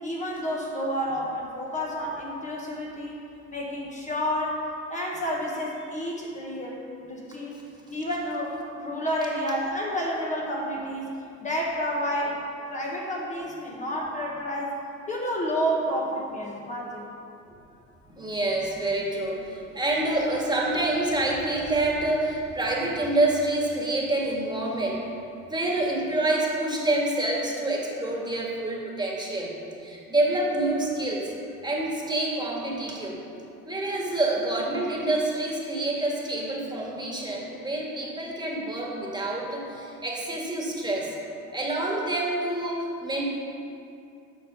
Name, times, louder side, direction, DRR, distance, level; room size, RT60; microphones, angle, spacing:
voice 1, 0.0-3.2 3.5-4.6 4.9-7.6 7.9-11.1 11.4-12.4 12.7-14.8 15.1-17.1, equal, 25° left, -3 dB, 1.3 m, -30 dB
voice 2, 18.2-25.0 25.4-29.5 29.8-31.3 31.6-33.2 33.6-41.2 41.5-43.2, right 2 dB, 15° right, -2 dB, 1.8 m, -27 dB
11.0 x 4.4 x 6.8 m, 2.7 s
cardioid pair, 105°, 30 cm